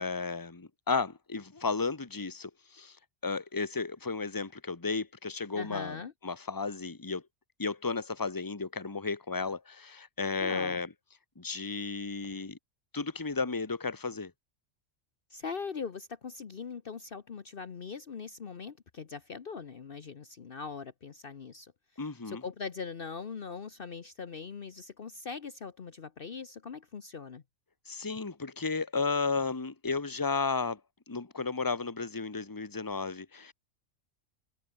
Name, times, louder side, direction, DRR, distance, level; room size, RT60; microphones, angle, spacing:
voice 1, 0.0-3.0 3.2-7.2 7.6-10.9 11.4-12.6 12.9-14.3 22.0-22.4 27.9-30.8 31.1-33.5, left 4 dB, 15° left, 1.3 m, -33 dB
voice 2, 5.5-6.1 10.4-10.8 15.3-21.7 22.3-27.4, left 5 dB, 50° left, 1.1 m, -41 dB
omnidirectional pair, 1.3 m